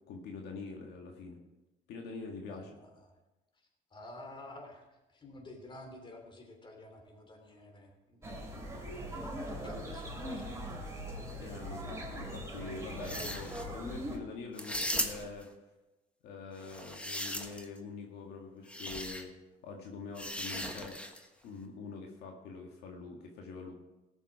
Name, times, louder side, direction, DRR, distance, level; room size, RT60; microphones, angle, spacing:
voice 1, 0.1-1.4 1.9-2.8 11.4-15.5 16.2-19.3 19.6-21.0 21.4-23.7, left 4 dB, 75° left, 1 dB, 1.9 m, -44 dB
voice 2, 2.5-2.9 3.9-8.2 9.5-10.9, left 1 dB, 30° left, 3 dB, 3.2 m, -50 dB
sound 1, 8.2-14.2, equal, 15° right, 3.3 m, -41 dB
sound 2, 12.9-13.7 14.6-15.4 16.6-17.8 18.7-19.2 20.2-21.3, equal, 5° left, 1.4 m, -38 dB
18.5 x 7.3 x 4.8 m, 1.0 s
cardioid pair, 110°, 17 cm